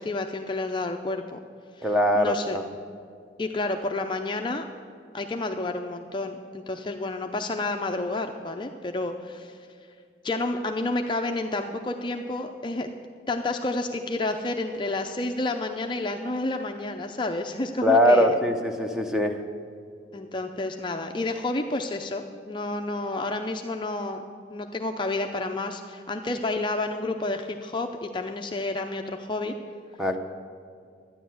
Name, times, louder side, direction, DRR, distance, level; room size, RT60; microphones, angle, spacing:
voice 1, 0.0-1.4 1.8-1.9 2.1-2.6 3.4-4.6 5.1-9.6 10.2-12.9 13.3-18.4 20.1-24.2 24.5-29.5, left 2 dB, 25° left, 4 dB, 0.5 m, -30 dB
voice 2, 1.8-2.6 17.8-19.4 30.0-30.2, equal, 5° right, 4 dB, 0.8 m, -21 dB
12.0 x 10.0 x 7.7 m, 2.2 s
head